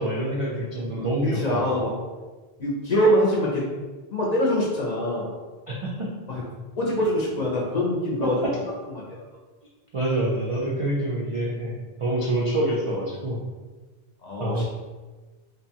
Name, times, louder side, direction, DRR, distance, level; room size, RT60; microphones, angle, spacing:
voice 1, 0.0-1.7 5.7-6.1 8.2-8.3 9.9-11.7 12.0-13.4 14.4-14.6, right 1 dB, 55° right, -5 dB, 0.3 m, -26 dB
voice 2, 1.2-1.9 2.6-3.7 4.1-5.3 6.3-6.4 6.8-8.5 8.9-9.2 14.2-14.6, equal, 50° left, -4 dB, 0.6 m, -24 dB
2.7 x 2.2 x 2.8 m, 1.3 s
omnidirectional pair, 1.1 m